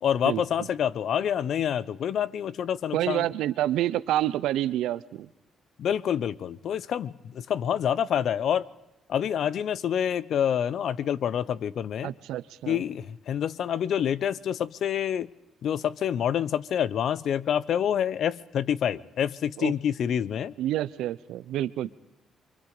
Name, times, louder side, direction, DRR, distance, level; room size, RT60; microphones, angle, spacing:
voice 1, 0.0-3.3 5.8-8.7 9.1-12.1 12.7-15.3 15.6-20.5, left 9 dB, 65° left, 0.8 m, -27 dB
voice 2, 2.9-5.3 12.0-12.8 19.6-19.7 20.6-21.9, right 13 dB, 85° right, 0.8 m, -28 dB
28.5 x 24.5 x 5.0 m
cardioid pair, 90°, 0 cm